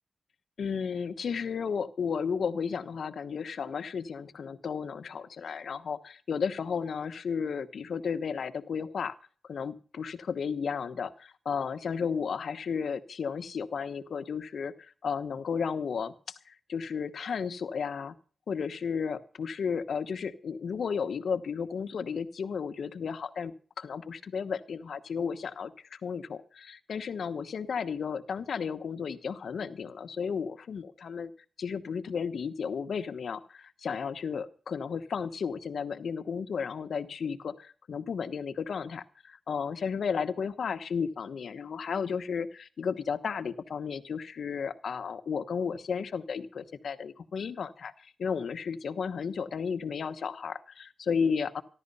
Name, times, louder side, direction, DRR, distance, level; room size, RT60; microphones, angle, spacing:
voice 1, 0.6-9.2 9.5-11.1 11.4-18.1 18.5-31.3 31.6-51.6, left 6 dB, 80° left, 11 dB, 1.1 m, -33 dB
15.0 x 12.0 x 5.5 m, 0.40 s
cardioid pair, 80°, 0 cm